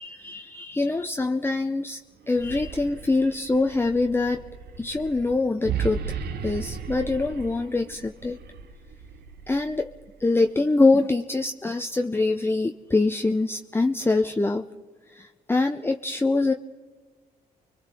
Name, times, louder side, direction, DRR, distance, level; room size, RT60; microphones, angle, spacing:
voice 1, 0.0-2.0 2.3-4.5 4.8-8.4 9.5-9.9 10.2-14.7 15.1-16.5, left 3 dB, 15° left, 5 dB, 0.6 m, -24 dB
sound 1, 2.2-10.3, right 7 dB, 70° right, 1.2 m, -36 dB
29.5 x 23.0 x 3.8 m, 1.5 s
cardioid pair, 75°, 17 cm